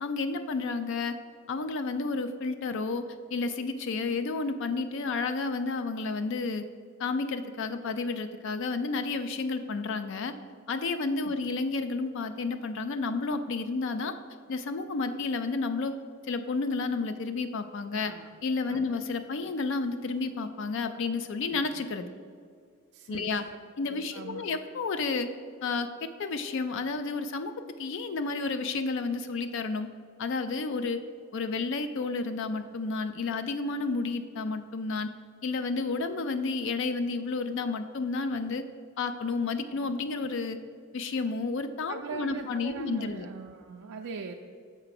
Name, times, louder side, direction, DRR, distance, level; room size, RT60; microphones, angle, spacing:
voice 1, 0.0-1.2 1.5-3.0 3.3-6.6 7.0-10.3 10.7-14.1 14.5-15.9 16.3-18.1 18.4-22.1 23.1-23.5 23.8-25.3 25.6-27.5 27.8-29.9 30.2-31.0 31.3-35.1 35.4-38.7 39.0-40.6 40.9-43.3, left 3 dB, 55° left, 10 dB, 0.4 m, -31 dB
voice 2, 22.9-23.6 23.9-24.4 41.9-44.3, right 5 dB, 85° right, 2 dB, 0.4 m, -40 dB
6.8 x 4.5 x 5.8 m, 2.1 s
head